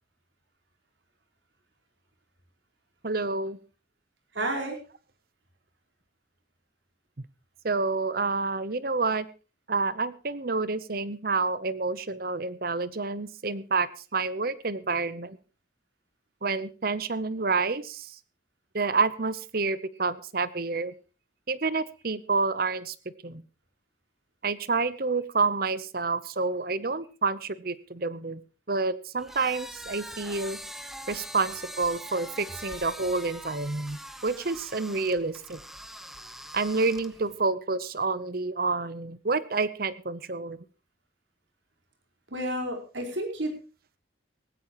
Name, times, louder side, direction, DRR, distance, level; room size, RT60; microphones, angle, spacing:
voice 1, 3.0-3.6 7.6-9.3 9.7-15.4 16.4-18.1 18.7-20.9 21.5-22.9 23.2-23.4 24.4-28.4 28.7-30.6 31.1-35.6 36.5-40.6, right 4 dB, 50° right, 16 dB, 0.9 m, -28 dB
voice 2, 4.3-4.8 42.3-43.6, right 1 dB, 75° right, 3 dB, 4.9 m, -31 dB
sound 1, 29.2-37.4, equal, ahead, 1.1 m, -43 dB
18.5 x 16.0 x 3.1 m, 0.33 s
head